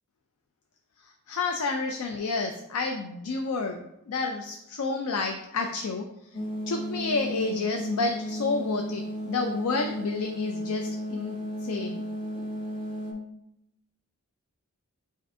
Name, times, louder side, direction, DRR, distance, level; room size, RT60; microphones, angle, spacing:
voice 1, 1.3-6.1 6.7-11.4 11.6-12.0, left 3 dB, 70° left, 4 dB, 0.4 m, -30 dB
sound 1, 6.3-13.1, equal, 25° left, 0.8 m, -34 dB
7.3 x 2.5 x 2.6 m, 0.81 s
head